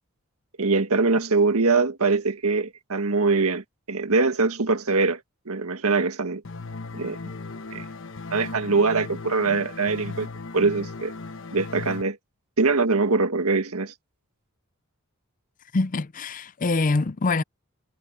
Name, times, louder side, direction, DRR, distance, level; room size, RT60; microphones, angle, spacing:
voice 1, 0.6-5.2 5.4-6.4 6.9-7.2 7.7-7.8 8.3-10.3 10.5-11.1 11.5-12.2 12.6-13.9, right 3 dB, 80° right, 1.7 m, -23 dB
sound 1, 6.4-12.0, left 3 dB, 60° left, 1.1 m, -37 dB
voice 2, 15.7-17.4, left 3 dB, 40° left, 0.5 m, -24 dB
head